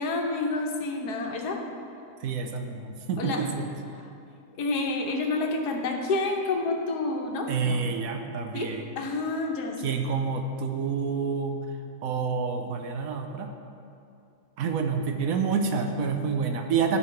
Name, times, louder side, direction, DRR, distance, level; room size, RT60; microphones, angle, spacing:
voice 1, 0.0-1.6 3.2-3.4 3.9-4.1 4.6-7.8 8.5-9.9, left 3 dB, 80° left, 2 dB, 1.5 m, -29 dB
voice 2, 2.2-3.7 7.5-8.8 9.8-11.6 12.0-13.5 14.6-17.0, right 5 dB, 65° right, 4 dB, 1.0 m, -28 dB
15.0 x 5.7 x 3.2 m, 2.5 s
omnidirectional pair, 1.7 m